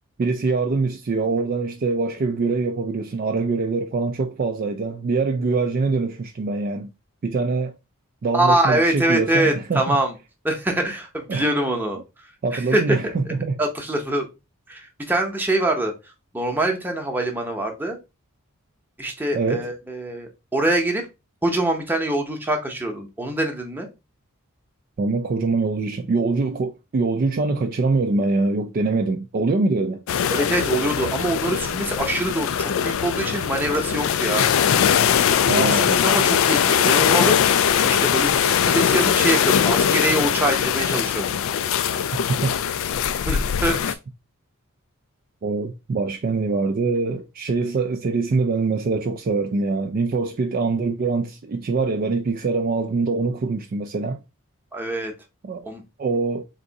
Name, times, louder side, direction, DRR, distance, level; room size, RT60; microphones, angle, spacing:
voice 1, 0.2-6.9 7.2-7.7 8.2-10.0 11.3-11.5 12.4-13.6 19.3-19.7 25.0-30.0 35.5-36.0 37.8-38.0 42.3-42.5 45.4-54.2 55.4-55.6 56.0-56.4, right 3 dB, 40° right, 0.3 m, -24 dB
voice 2, 8.3-10.1 10.4-12.0 12.5-13.0 13.6-14.3 14.7-15.9 16.3-18.0 19.0-21.0 21.4-23.9 30.3-34.5 35.6-41.3 43.3-44.0 54.7-55.1 55.6-55.8, right 1 dB, 10° right, 0.8 m, -24 dB
sound 1, 30.1-43.9, left 8 dB, 60° left, 0.3 m, -21 dB
3.6 x 2.6 x 3.9 m
head